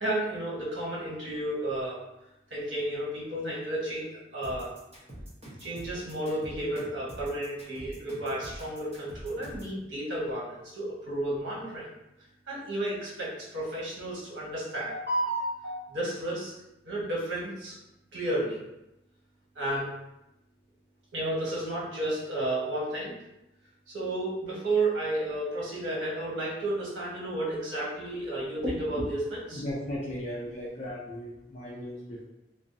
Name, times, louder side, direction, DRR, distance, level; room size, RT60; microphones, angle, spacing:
voice 1, 0.0-2.0 2.5-4.7 5.6-11.9 12.5-16.5 16.8-17.8 18.1-18.6 19.5-19.9 21.1-23.1 23.9-29.6, right 1 dB, 85° right, -6 dB, 0.9 m, -32 dB
sound 1, 4.4-9.8, equal, 35° right, 0.8 m, -44 dB
voice 2, 29.5-32.2, left 1 dB, 40° left, -6 dB, 0.4 m, -37 dB
2.5 x 2.1 x 2.5 m, 0.92 s
head